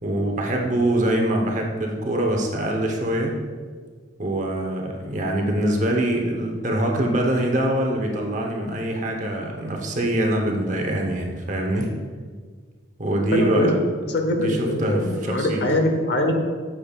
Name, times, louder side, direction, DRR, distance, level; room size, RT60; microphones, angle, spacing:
voice 1, 0.0-3.4 4.2-11.9 13.0-13.7 14.3-15.6, right 1 dB, 40° right, 2 dB, 0.9 m, -24 dB
voice 2, 13.3-13.7 14.1-16.4, left 1 dB, 55° left, 4 dB, 0.9 m, -22 dB
8.7 x 7.1 x 2.4 m, 1.6 s
head